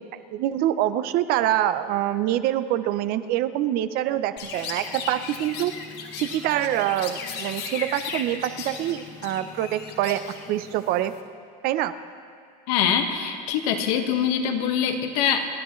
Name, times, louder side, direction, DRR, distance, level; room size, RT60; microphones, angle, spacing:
voice 1, 0.1-5.7 6.2-10.2 10.5-11.1 11.6-11.9, right 12 dB, 50° right, 12 dB, 0.6 m, -25 dB
Chirp tweet, 4.4-11.2, left 5 dB, 55° left, 1.5 m, -36 dB
voice 2, 12.7-15.5, left 8 dB, 75° left, 5 dB, 1.5 m, -24 dB
27.5 x 10.5 x 3.1 m, 2.4 s
supercardioid pair, 140°, 20 cm